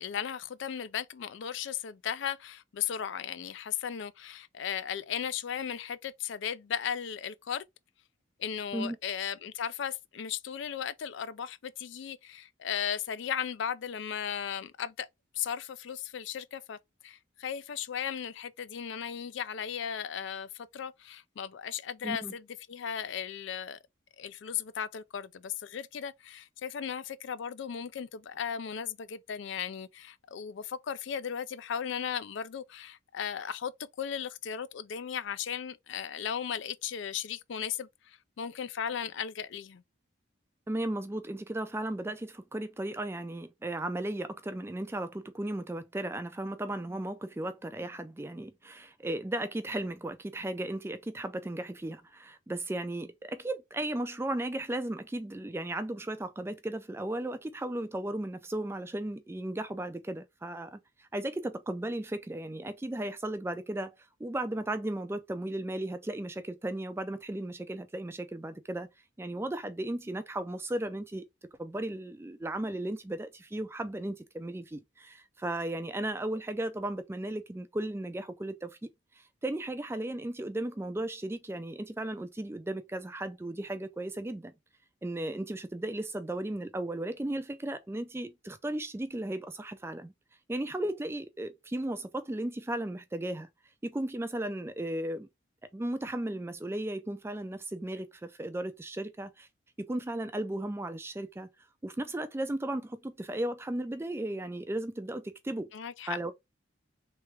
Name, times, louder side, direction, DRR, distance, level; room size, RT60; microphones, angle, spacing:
voice 1, 0.0-7.6 8.4-15.1 15.3-16.8 17.0-23.8 24.2-33.7 34.0-39.8 105.7-106.3, left 8 dB, 65° left, 0.4 m, -36 dB
voice 2, 22.0-22.3 40.7-63.9 64.2-68.9 69.2-71.3 71.6-78.9 79.2-84.5 85.0-90.1 90.5-93.5 93.8-95.3 95.7-99.5 99.8-101.5 101.8-105.7 106.1-106.3, right 1 dB, 10° right, 0.3 m, -35 dB
3.3 x 3.3 x 3.2 m
head